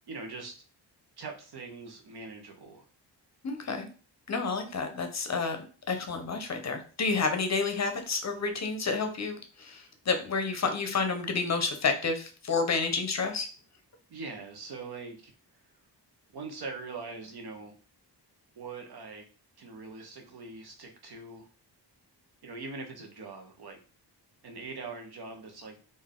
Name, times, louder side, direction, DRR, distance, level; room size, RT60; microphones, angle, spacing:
voice 1, 0.1-0.6 1.2-2.9 14.1-15.3 16.3-17.7 18.6-19.2 19.6-21.5 22.4-23.8 24.4-25.8, right 3 dB, 65° right, 3 dB, 0.9 m, -42 dB
voice 2, 3.4-3.9 4.3-5.6 5.9-13.5, left 4 dB, 40° left, 6 dB, 0.6 m, -30 dB
3.9 x 2.6 x 3.6 m, 0.37 s
wide cardioid pair, 170°, 42 cm